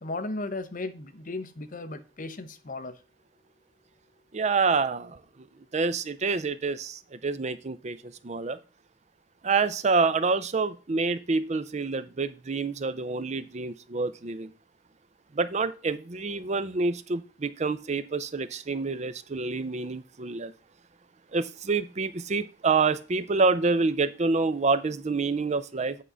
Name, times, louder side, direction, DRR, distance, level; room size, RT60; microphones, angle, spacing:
voice 1, 0.0-3.0, left 2 dB, 45° left, 0.8 m, -35 dB
voice 2, 4.3-5.2 5.7-8.6 9.4-14.5 15.3-20.5 21.3-26.0, right 4 dB, 40° right, 0.5 m, -27 dB
8.6 x 3.7 x 6.7 m
head